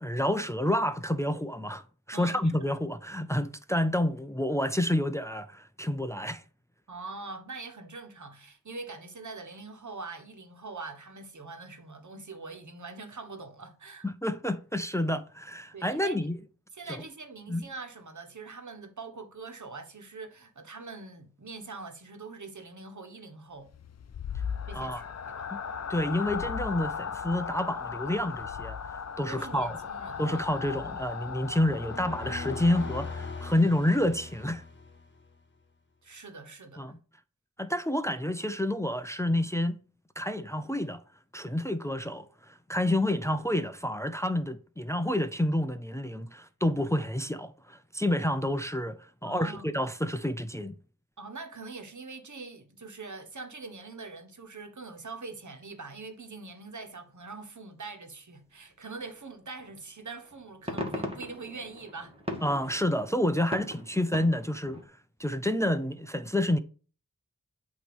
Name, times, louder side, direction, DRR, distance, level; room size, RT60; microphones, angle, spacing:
voice 1, 0.0-1.8 2.1-6.4 14.0-16.4 17.5-17.6 24.7-25.0 25.5-25.6 25.9-28.8 29.2-29.8 30.2-34.6 36.8-37.0 37.6-39.8 40.2-41.0 41.3-50.7 62.4-64.8 65.2-66.6, left 1 dB, 10° left, 0.6 m, -29 dB
voice 2, 2.1-2.7 6.9-14.1 15.7-16.2 16.7-23.7 24.7-25.5 29.3-30.8 36.0-36.9 49.2-49.8 51.2-62.2, right 3 dB, 65° right, 1.4 m, -43 dB
sound 1, 23.7-33.7, left 6 dB, 55° left, 0.6 m, -37 dB
sound 2, 31.5-35.4, left 4 dB, 35° left, 1.4 m, -40 dB
sound 3, 59.6-59.7 60.2-64.8, left 1 dB, 20° right, 2.0 m, -39 dB
8.3 x 3.1 x 6.1 m
cardioid pair, 45°, 32 cm